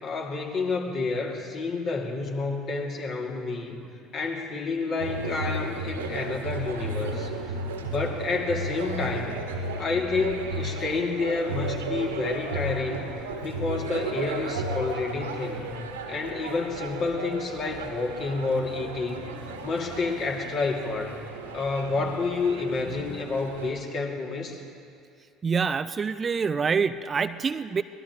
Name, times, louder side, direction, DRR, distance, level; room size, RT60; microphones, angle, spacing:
voice 1, 0.0-3.8 4.1-7.5 7.8-9.4 9.8-13.1 13.4-15.8 16.1-19.3 19.6-21.1 21.5-24.6, left 3 dB, 45° left, 0 dB, 2.4 m, -29 dB
sound 1, 5.0-23.7, right 2 dB, 80° right, 1.6 m, -34 dB
voice 2, 25.4-27.8, right 5 dB, 30° right, 13 dB, 0.4 m, -26 dB
24.5 x 19.0 x 3.1 m, 2.4 s
figure-of-eight pair, 60°, 0 cm